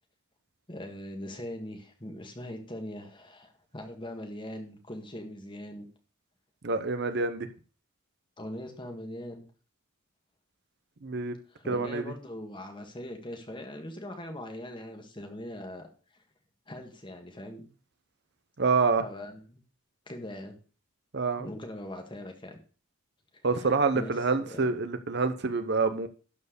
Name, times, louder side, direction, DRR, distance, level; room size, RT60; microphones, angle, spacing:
voice 1, 0.7-5.9 8.4-9.4 11.5-15.9 16.7-17.7 19.0-19.6 20.1-20.6 21.4-22.6 23.6-24.1 24.5-24.7, left 1 dB, 20° left, 1.8 m, -41 dB
voice 2, 6.6-7.5 11.0-11.4 11.6-12.0 18.6-19.0 21.1-21.5 23.4-26.1, right 4 dB, 50° right, 0.8 m, -27 dB
12.0 x 4.6 x 6.7 m
head